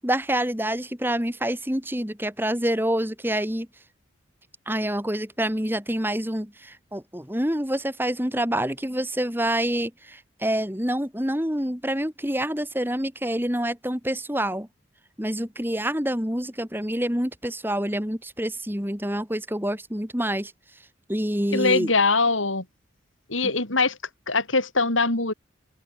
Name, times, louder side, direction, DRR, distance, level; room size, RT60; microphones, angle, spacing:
voice 1, 0.0-3.7 4.7-14.7 15.2-20.5 21.1-21.9 23.4-23.5, right 1 dB, 10° right, 3.4 m, -27 dB
voice 2, 21.5-22.7 23.3-24.0 24.3-25.3, left 3 dB, 90° left, 7.2 m, -22 dB
open air
head